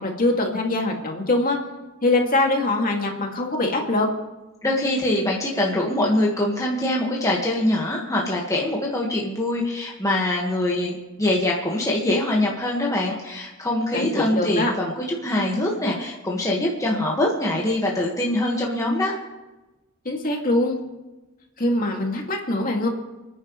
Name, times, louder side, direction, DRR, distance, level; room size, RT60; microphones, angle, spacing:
voice 1, 0.0-1.6 2.0-4.1 13.9-14.7 20.0-20.8 21.6-22.9, left 2 dB, 45° left, 0 dB, 2.3 m, -23 dB
voice 2, 4.6-19.2, left 1 dB, 15° left, -3 dB, 1.6 m, -23 dB
30.0 x 10.0 x 3.2 m, 1.1 s
head